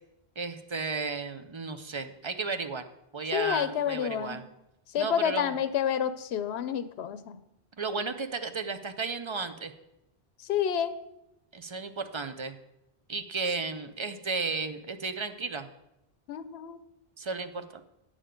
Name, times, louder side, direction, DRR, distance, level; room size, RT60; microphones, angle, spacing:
voice 1, 0.4-2.8 3.1-4.4 5.0-5.5 7.8-9.7 11.5-12.6 13.1-15.7 17.2-17.8, right 4 dB, 40° right, 9 dB, 0.4 m, -34 dB
voice 2, 3.3-4.5 4.9-7.4 10.4-11.0 16.3-16.8, left 9 dB, 85° left, 12 dB, 0.8 m, -29 dB
8.9 x 6.7 x 5.1 m, 0.87 s
omnidirectional pair, 1.0 m